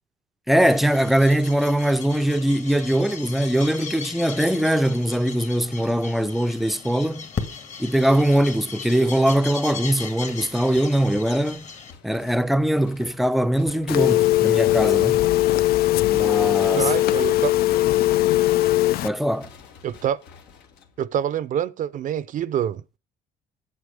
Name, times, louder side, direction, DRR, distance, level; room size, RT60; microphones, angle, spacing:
voice 1, 0.5-7.3 7.8-11.7 12.0-15.3 16.1-16.9 19.0-19.5, right 1 dB, ahead, 0.5 m, -21 dB
sound 1, 0.6-11.9, left 5 dB, 45° left, 1.8 m, -37 dB
sound 2, 10.2-21.3, left 6 dB, 85° left, 1.7 m, -49 dB
Telephone, 13.9-19.1, left 15 dB, 65° left, 0.4 m, -19 dB
voice 2, 16.7-17.9 19.8-20.2 21.0-22.8, right 10 dB, 50° right, 0.5 m, -26 dB
8.3 x 8.2 x 5.0 m
cardioid pair, 110°, 17 cm